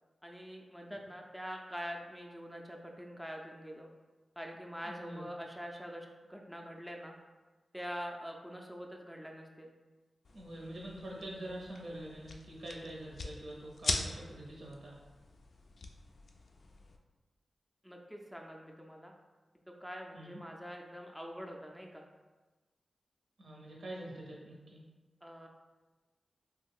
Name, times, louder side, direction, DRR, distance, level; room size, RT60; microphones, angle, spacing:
voice 1, 0.2-3.9 4.4-7.1 7.7-9.7 17.8-19.1 19.8-22.1 25.2-25.5, equal, ahead, 0 dB, 0.4 m, -45 dB
voice 2, 4.8-5.3 10.3-15.0 20.1-20.4 23.4-24.8, right 1 dB, 75° right, -3 dB, 0.8 m, -45 dB
sound 1, 10.2-17.0, left 3 dB, 75° left, 0.3 m, -42 dB
2.9 x 2.3 x 3.5 m, 1.2 s
cardioid pair, 55°, 0 cm